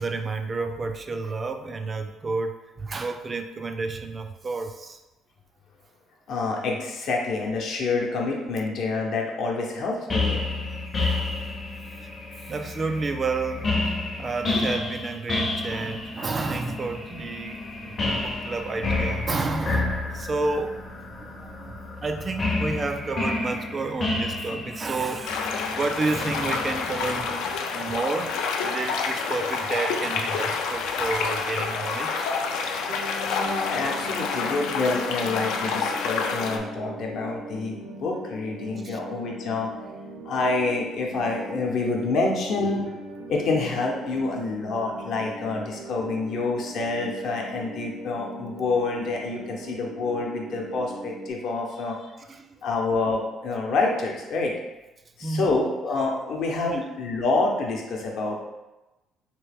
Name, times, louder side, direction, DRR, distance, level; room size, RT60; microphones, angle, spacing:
voice 1, 0.0-5.0 11.0-11.4 11.9-12.1 12.4-20.8 21.1-21.7 22.0-32.3 33.3-33.4 38.8-39.0 52.3-52.6 55.2-55.6 56.7-56.9, right 3 dB, 30° right, 7 dB, 0.3 m, -31 dB
voice 2, 6.3-10.4 14.5-14.6 33.3-39.7 40.2-42.9 43.3-52.0 52.6-54.5 55.2-58.4, left 3 dB, 65° left, 0 dB, 0.8 m, -27 dB
sound 1, 10.1-27.4, left 2 dB, 30° left, 0.6 m, -30 dB
Murmuring Stream, 25.2-36.6, left 5 dB, 85° left, 0.4 m, -28 dB
sound 2, 32.9-51.3, right 1 dB, 80° right, 0.5 m, -41 dB
3.1 x 3.1 x 3.4 m, 1.0 s
cardioid pair, 115°, 0 cm